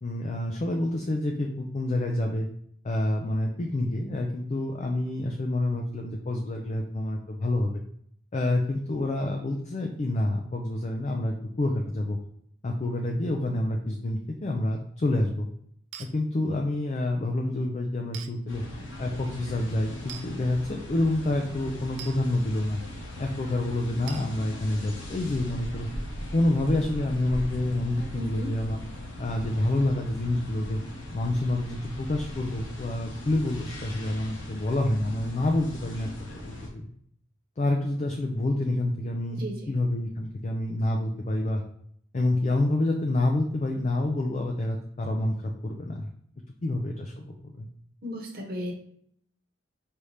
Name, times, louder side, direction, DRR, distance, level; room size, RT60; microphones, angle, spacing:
voice 1, 0.0-2.5 2.8-7.8 8.3-12.2 12.6-15.5 16.0-18.6 19.0-22.8 23.2-25.9 26.3-28.8 29.2-30.8 31.1-36.1 36.4-36.8 37.6-41.6 42.1-46.1 46.6-47.7, left 1 dB, 35° left, 2 dB, 0.4 m, -28 dB
sound 1, 15.9-16.1 18.1-18.3 20.1-20.3 22.0-22.2 24.1-24.3, right 9 dB, 85° right, 0.4 m, -41 dB
sound 2, 18.5-36.7, left 1 dB, 85° left, 1.1 m, -39 dB
voice 2, 28.1-28.5 39.3-39.7 48.0-48.7, left 1 dB, 50° right, 1 dB, 0.9 m, -35 dB
4.8 x 2.8 x 3.2 m, 0.68 s
head